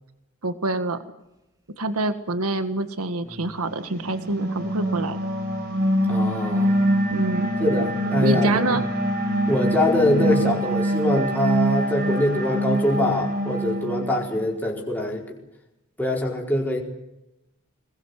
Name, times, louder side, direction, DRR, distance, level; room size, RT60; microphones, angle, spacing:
voice 1, 0.4-1.0 1.8-5.2 7.1-7.5 8.2-8.8, right 2 dB, 75° right, 10 dB, 1.7 m, -26 dB
sound 1, 3.2-10.6, equal, 15° right, 1.7 m, -34 dB
sound 2, 4.0-14.5, right 1 dB, 50° right, 5.1 m, -24 dB
voice 2, 6.1-6.8 7.6-8.6 9.5-15.2 16.0-16.8, left 1 dB, 10° left, -2 dB, 4.6 m, -23 dB
23.0 x 20.5 x 8.1 m, 0.91 s
head